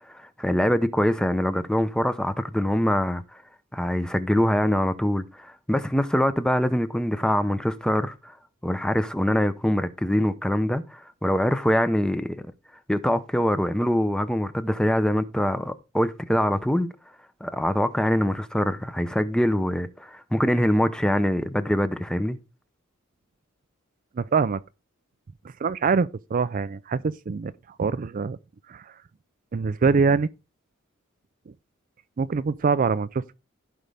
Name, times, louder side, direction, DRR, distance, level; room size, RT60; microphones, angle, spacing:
voice 1, 0.1-3.4 3.7-8.3 8.6-12.4 12.9-16.9 17.4-22.4, equal, 5° left, 0.6 m, -24 dB
voice 2, 24.2-24.6 25.6-27.5 27.8-28.4 28.7-28.9 29.5-30.3 31.5-31.6 32.2-33.3, right 5 dB, 40° right, 0.4 m, -24 dB
15.5 x 5.2 x 3.4 m
head